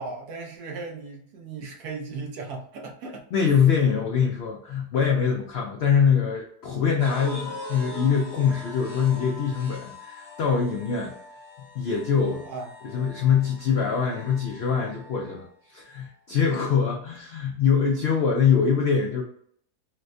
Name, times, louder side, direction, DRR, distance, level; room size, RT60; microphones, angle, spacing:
voice 1, 0.0-3.2 12.4-12.7, right 4 dB, 75° right, 0 dB, 1.3 m, -36 dB
voice 2, 3.3-11.1 11.7-12.4 12.8-19.2, left 6 dB, 90° left, 1 dB, 0.5 m, -23 dB
sound 1, 7.0-15.4, left 1 dB, 35° right, 0.6 m, -42 dB
4.2 x 2.1 x 2.5 m, 0.65 s
omnidirectional pair, 1.7 m